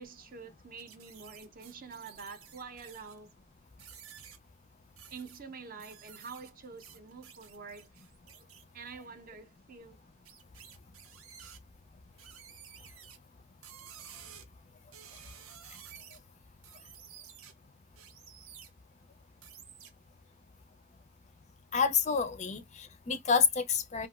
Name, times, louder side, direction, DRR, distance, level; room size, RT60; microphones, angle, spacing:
voice 1, 0.0-3.3 5.1-8.0 8.7-10.0, right 5 dB, 40° right, 0.5 m, -47 dB
sound 1, 0.8-3.3 3.8-4.4 5.0-5.4 5.8-8.6 10.3-11.6 12.2-13.2 13.6-14.5 14.9-16.2 16.6-17.5 18.0-18.7 19.4-19.9, right 8 dB, 85° right, 0.6 m, -52 dB
voice 2, 21.7-24.1, left 6 dB, 35° left, 0.4 m, -28 dB
2.8 x 2.5 x 2.3 m
head